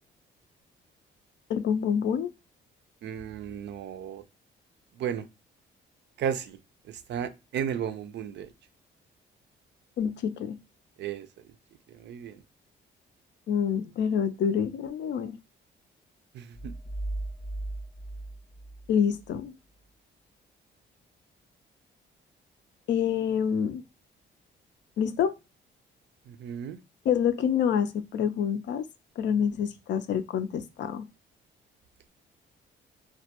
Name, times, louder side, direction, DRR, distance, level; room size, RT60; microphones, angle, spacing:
voice 1, 1.5-2.3 10.0-10.6 13.5-15.4 18.9-19.5 22.9-23.8 25.0-25.3 27.1-28.8 29.2-31.1, left 8 dB, 65° left, 0.4 m, -27 dB
voice 2, 3.0-4.2 4.9-5.3 6.2-6.6 6.9-8.5 11.0-11.3 11.9-12.4 16.3-16.7 26.3-26.8, right 8 dB, 65° right, 0.4 m, -34 dB
sound 1, 16.5-19.3, right 1 dB, 10° left, 0.7 m, -37 dB
2.2 x 2.1 x 2.8 m
cardioid pair, 90°, 20 cm